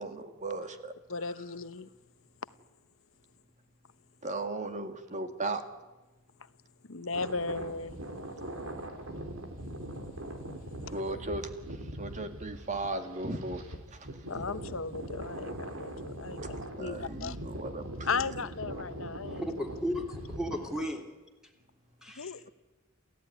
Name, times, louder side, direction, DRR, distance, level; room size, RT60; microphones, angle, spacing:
voice 1, 0.0-0.9 4.2-5.6 10.9-14.1 16.4-18.3, right 2 dB, 35° right, 2.1 m, -37 dB
voice 2, 1.1-1.9 6.9-8.0 14.3-17.4 18.0-19.4 22.2-22.5, left 4 dB, 70° left, 1.0 m, -36 dB
sound 1, 7.1-20.9, right 1 dB, 80° right, 3.4 m, -41 dB
voice 3, 19.3-21.1 22.0-22.4, equal, 5° right, 3.4 m, -35 dB
28.0 x 15.5 x 9.8 m
head